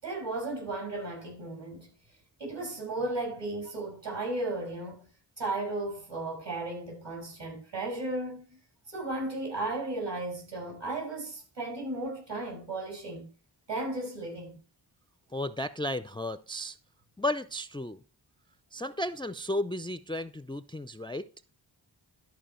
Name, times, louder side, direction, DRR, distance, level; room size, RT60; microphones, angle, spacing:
voice 1, 0.0-1.9 2.4-5.1 5.4-8.4 8.9-13.3 13.7-14.5, right 2 dB, 65° right, 5.7 m, -35 dB
voice 2, 15.3-16.8 17.2-18.0 18.7-21.3, left 1 dB, 10° left, 0.4 m, -33 dB
12.5 x 4.6 x 4.4 m
cardioid pair, 45°, 47 cm